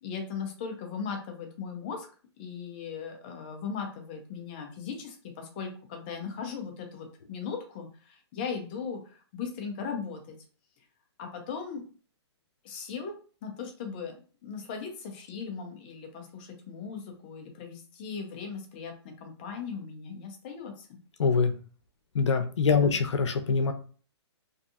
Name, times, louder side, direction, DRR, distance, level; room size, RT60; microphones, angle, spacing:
voice 1, 0.0-2.1 2.4-10.4 11.2-11.8 12.6-13.1 13.4-14.1 14.4-21.0 22.7-23.0, left 6 dB, 20° left, 4 dB, 0.4 m, -38 dB
voice 2, 21.2-21.5 22.1-23.7, left 5 dB, 90° left, 6 dB, 0.6 m, -24 dB
2.6 x 2.3 x 2.6 m, 0.40 s
hypercardioid pair, 165°, 15 cm